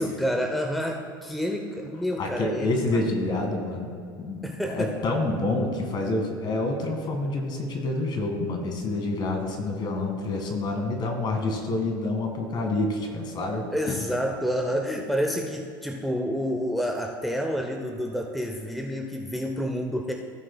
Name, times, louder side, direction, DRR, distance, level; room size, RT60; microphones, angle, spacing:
voice 1, 0.0-3.0 4.4-5.0 13.7-20.1, equal, ahead, 3 dB, 0.7 m, -29 dB
voice 2, 2.2-13.9, left 2 dB, 40° left, 3 dB, 1.9 m, -28 dB
16.5 x 6.4 x 2.3 m, 2.3 s
hypercardioid pair, 85°, 11 cm